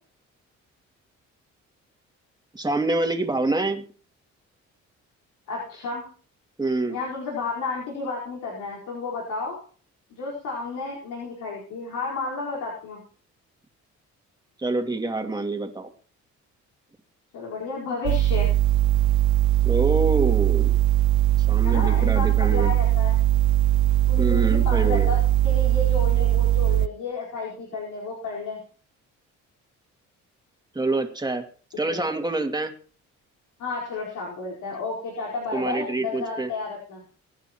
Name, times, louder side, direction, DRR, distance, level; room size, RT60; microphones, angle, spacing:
voice 1, 2.5-3.8 6.6-7.0 14.6-15.9 19.6-20.8 21.5-22.7 24.2-25.2 30.7-31.4 31.8-32.7 35.5-36.5, right 2 dB, 15° right, 4 dB, 2.5 m, -26 dB
voice 2, 5.5-6.1 6.9-9.6 10.1-13.0 17.3-18.5 21.6-23.2 24.1-28.6 31.9-32.1 33.6-37.0, left 4 dB, 80° left, -4 dB, 4.6 m, -32 dB
sound 1, 18.0-26.9, right 13 dB, 70° right, 0.5 m, -20 dB
24.0 x 10.0 x 3.1 m, 0.41 s
cardioid pair, 90°, 30 cm